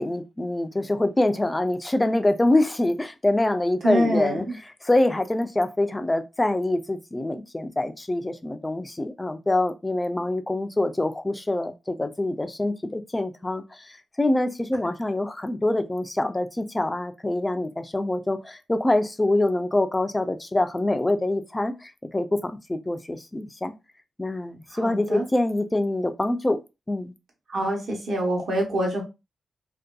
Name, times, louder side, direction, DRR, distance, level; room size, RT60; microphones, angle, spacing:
voice 1, 0.0-4.4 4.8-23.7 24.2-26.6 26.9-27.1, left 1 dB, 15° left, 0.3 m, -25 dB
voice 2, 3.8-4.5 24.7-25.2 27.5-29.0, equal, 65° right, 1.0 m, -25 dB
2.6 x 2.2 x 2.3 m
wide cardioid pair, 105°, 0 cm